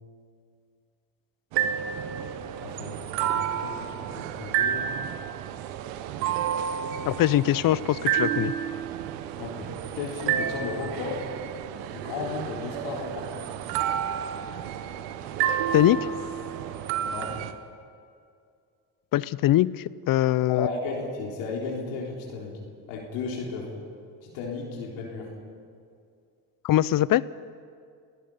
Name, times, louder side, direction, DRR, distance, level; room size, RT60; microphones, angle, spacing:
sound 1, 1.5-17.5, right 9 dB, 80° right, 1.2 m, -30 dB
voice 1, 2.6-5.0 9.4-11.3 11.8-13.5 17.0-17.4 20.5-22.6 22.9-23.7 24.2-25.3, left 4 dB, 80° left, -1 dB, 3.8 m, -34 dB
voice 2, 7.1-8.5 15.7-16.1 19.1-20.7 26.6-27.2, left 14 dB, 50° left, 20 dB, 0.7 m, -22 dB
29.0 x 16.0 x 5.6 m, 2.3 s
hypercardioid pair, 65°, 43 cm